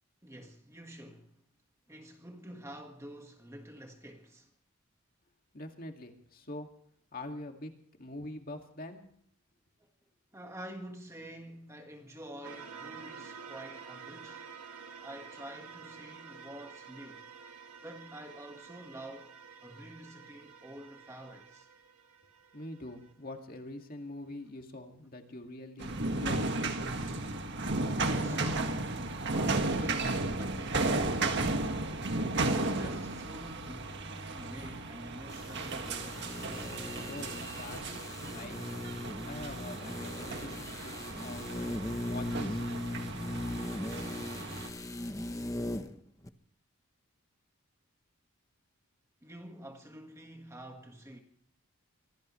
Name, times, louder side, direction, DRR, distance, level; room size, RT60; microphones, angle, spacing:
voice 1, 0.2-1.3 1.9-4.5 9.8-9.9 10.3-14.5 15.0-17.2 17.8-19.3 19.6-21.7 27.5-28.9 29.3-31.6 32.1-36.4 49.2-51.2, right 1 dB, 15° right, 1.6 m, -48 dB
voice 2, 5.5-6.7 7.1-9.0 22.5-26.5 37.1-37.9 38.3-38.7 39.2-41.8 42.0-42.6, left 2 dB, 40° left, 2.2 m, -44 dB
sound 1, 12.4-23.1, right 6 dB, 90° right, 2.4 m, -50 dB
sound 2, 25.8-44.7, right 2 dB, 50° right, 1.7 m, -34 dB
sound 3, 35.3-46.0 46.2-46.3, left 1 dB, 15° left, 0.9 m, -39 dB
25.0 x 17.5 x 3.2 m
head